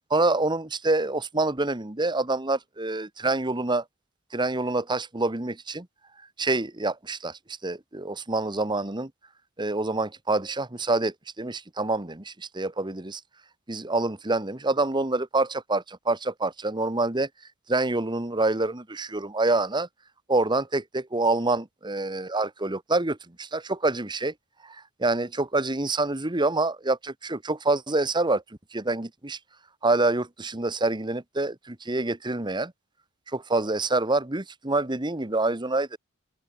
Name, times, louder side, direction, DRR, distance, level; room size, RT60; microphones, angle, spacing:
voice 1, 0.1-3.8 4.3-5.9 6.4-9.1 9.6-13.2 13.7-17.3 17.7-19.9 20.3-24.3 24.6-28.4 28.7-29.4 29.8-32.7 33.3-36.0, right 2 dB, 20° right, 1.2 m, -26 dB
head